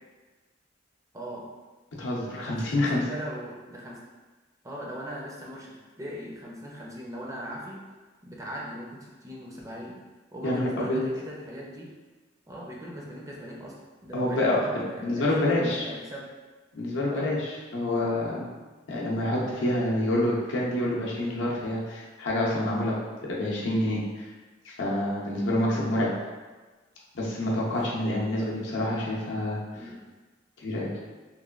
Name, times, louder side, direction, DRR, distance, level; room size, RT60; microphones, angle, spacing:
voice 1, 1.1-1.5 2.3-4.0 4.6-5.7 6.0-7.8 8.2-10.0 10.3-11.9 12.5-13.7 14.0-16.3 17.1-17.3 18.9-19.1 22.9-23.1 25.6-25.8 27.7-28.0 28.4-28.5 29.7-30.0, equal, 20° right, -4 dB, 0.4 m, -39 dB
voice 2, 2.0-3.0 10.4-11.0 14.1-15.9 16.7-18.5 18.9-23.0 23.3-24.3 24.6-26.1 27.1-29.6 30.6-30.9, left 1 dB, 80° left, -4 dB, 0.6 m, -27 dB
3.1 x 2.2 x 2.3 m, 1.3 s
head